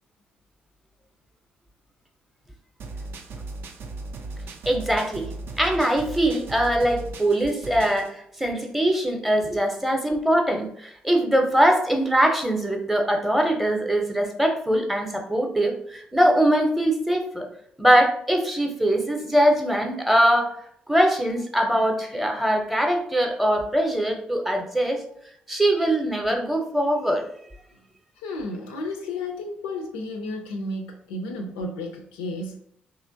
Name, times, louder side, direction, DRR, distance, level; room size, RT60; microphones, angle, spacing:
sound 1, 2.8-8.1, right 2 dB, 55° right, 0.3 m, -37 dB
voice 1, 4.7-5.3 5.6-17.5 17.8-20.5 20.9-25.0 25.5-27.3, right 1 dB, 5° right, 3 dB, 0.6 m, -22 dB
voice 2, 28.2-32.6, left 2 dB, 75° left, 3 dB, 0.3 m, -32 dB
2.9 x 2.4 x 2.6 m, 0.68 s
figure-of-eight pair, 40°, 5 cm